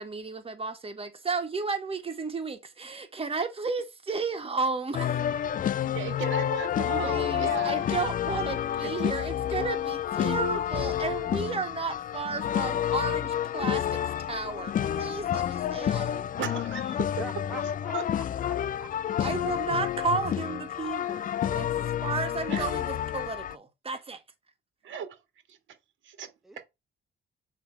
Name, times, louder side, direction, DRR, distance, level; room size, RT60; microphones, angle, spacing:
voice 1, 0.0-5.6 7.0-14.0 14.3-16.3 19.2-24.2, right 4 dB, 30° right, 1.6 m, -33 dB
sound 1, 4.9-23.6, left 10 dB, 45° left, 0.4 m, -29 dB
voice 2, 5.8-8.0 8.8-8.9 15.4-15.5 16.1-17.1 17.9-18.0 22.5-22.7 24.8-25.2 25.5-25.6 26.0-26.6, right 8 dB, 75° right, 1.7 m, -37 dB
voice 3, 17.2-18.9 26.4-26.6, right 2 dB, ahead, 0.8 m, -44 dB
7.2 x 3.4 x 4.5 m
cardioid pair, 90°, 20 cm